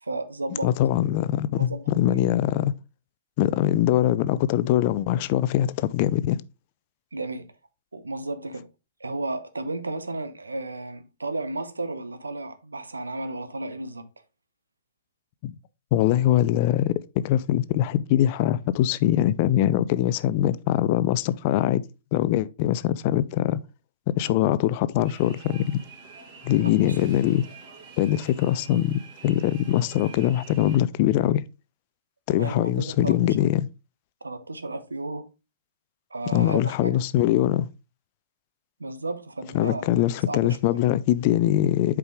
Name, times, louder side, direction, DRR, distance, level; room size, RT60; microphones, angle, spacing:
voice 1, 0.0-0.7 1.7-2.2 7.1-7.5 7.9-8.7 9.0-14.1 26.6-27.0 32.4-33.4 34.2-35.3 36.1-37.0 38.8-39.9 40.3-40.8, right 2 dB, 90° right, 1.0 m, -33 dB
voice 2, 0.6-2.7 3.4-6.4 15.4-15.5 15.9-21.8 22.1-23.6 24.2-25.6 26.4-27.4 28.0-31.4 32.3-33.7 36.3-37.7 39.5-42.0, left 12 dB, 40° left, 0.5 m, -22 dB
sound 1, 25.0-30.8, right 4 dB, 40° right, 2.1 m, -47 dB
8.0 x 4.8 x 3.6 m
hypercardioid pair, 120°, 0 cm